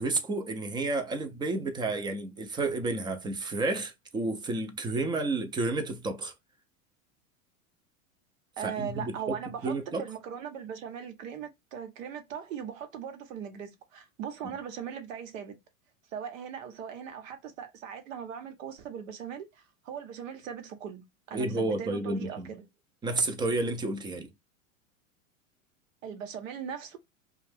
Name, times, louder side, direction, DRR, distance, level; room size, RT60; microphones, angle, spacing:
voice 1, 0.0-6.3 8.6-9.4 9.6-10.0 21.3-22.5 23.0-24.3, right 2 dB, 10° right, 0.3 m, -31 dB
voice 2, 8.6-15.6 16.1-22.6 26.0-27.0, right 8 dB, 75° right, 0.9 m, -39 dB
2.5 x 2.2 x 3.3 m
hypercardioid pair, 100°, 40 cm